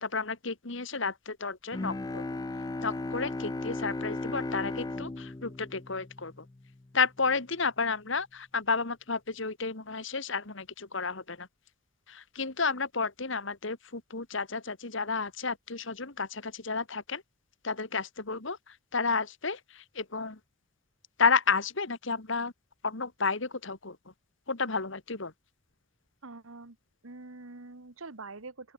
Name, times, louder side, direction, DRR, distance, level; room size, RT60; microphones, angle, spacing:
voice 1, 0.0-2.2 2.8-6.5 6.9-11.5 12.1-17.2 17.6-20.4 21.2-22.5 22.8-24.0 24.5-25.3, left 4 dB, 60° left, 1.8 m, -31 dB
Bowed string instrument, 1.7-6.9, left 2 dB, 20° left, 0.3 m, -36 dB
voice 2, 26.2-26.8 27.0-28.7, right 3 dB, 75° right, 1.5 m, -45 dB
open air
head